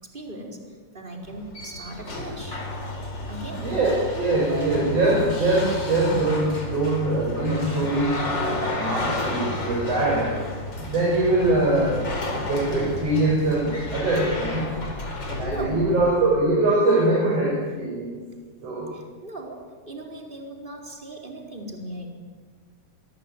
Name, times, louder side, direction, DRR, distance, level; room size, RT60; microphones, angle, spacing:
voice 1, 0.0-2.6 3.3-3.7 15.4-15.9 18.9-22.1, right 1 dB, 15° right, 2 dB, 4.5 m, -38 dB
sound 1, 1.2-16.4, left 2 dB, 35° left, 4.7 m, -31 dB
voice 2, 3.6-8.1 8.8-10.3 10.9-14.6 15.4-18.2 18.6-18.9, right 2 dB, 50° right, -3 dB, 6.6 m, -23 dB
26.5 x 21.0 x 9.5 m, 1.5 s
omnidirectional pair, 3.7 m